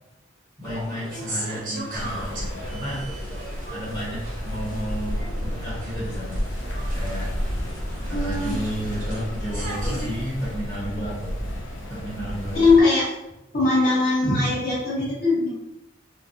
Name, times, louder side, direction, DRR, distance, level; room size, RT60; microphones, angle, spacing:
voice 1, 0.6-3.1 3.7-6.4 6.9-7.3 8.1-11.3 11.9-12.8, equal, 20° left, -11 dB, 1.0 m, -32 dB
sound 1, 0.6-10.1, right 1 dB, 45° right, 0.7 m, -37 dB
sound 2, 1.9-12.8, equal, 80° left, 0.6 m, -31 dB
voice 2, 8.0-8.6 12.5-13.1 13.5-15.5, left 3 dB, 50° left, -8 dB, 1.3 m, -20 dB
3.2 x 2.2 x 2.6 m, 0.91 s
head